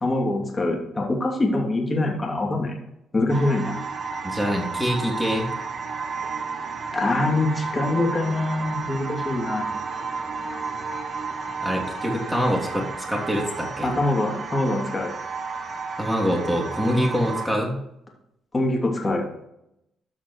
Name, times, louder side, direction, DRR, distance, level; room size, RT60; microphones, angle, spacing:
voice 1, 0.0-2.8 3.1-3.7 6.9-9.7 13.8-15.1 18.5-19.3, left 2 dB, 25° left, 0 dB, 2.8 m, -24 dB
sound 1, 3.3-17.5, right 4 dB, 45° right, 1.4 m, -32 dB
voice 2, 4.2-5.5 11.6-13.9 16.0-17.8, equal, ahead, -2 dB, 2.9 m, -25 dB
13.5 x 6.0 x 3.2 m, 0.81 s
cardioid pair, 90°, 0 cm